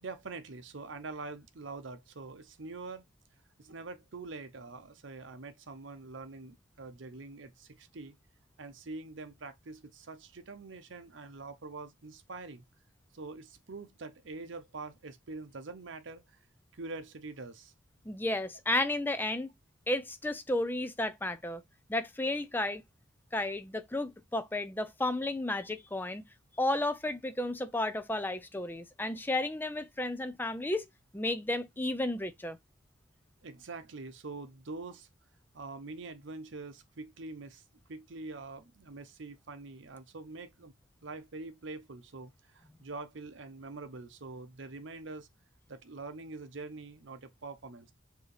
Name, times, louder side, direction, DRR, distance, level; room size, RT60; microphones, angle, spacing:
voice 1, 0.0-3.0 3.6-8.1 8.6-12.6 13.1-16.4 16.7-17.7 33.4-35.1 35.5-37.6 37.9-40.7 41.0-45.3 45.7-47.9, right 3 dB, 70° right, 0.7 m, -44 dB
voice 2, 18.1-19.5 19.9-21.6 21.9-22.8 23.3-26.2 26.6-30.9 31.1-32.6, left 1 dB, 10° left, 0.4 m, -32 dB
4.5 x 2.8 x 3.2 m
head